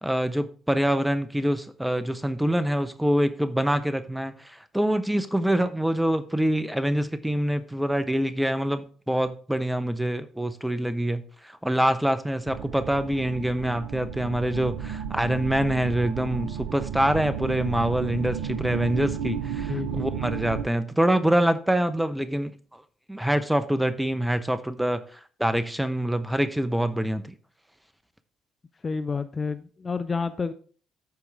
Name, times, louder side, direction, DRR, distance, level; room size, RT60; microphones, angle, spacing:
voice 1, 0.0-22.5 23.1-25.0 25.4-27.3, right 1 dB, 5° right, 0.8 m, -25 dB
sound 1, 12.5-20.6, right 8 dB, 65° right, 0.6 m, -33 dB
voice 2, 19.7-20.1 28.8-30.5, left 4 dB, 30° left, 0.5 m, -29 dB
14.0 x 4.7 x 3.5 m
figure-of-eight pair, 45°, 0 cm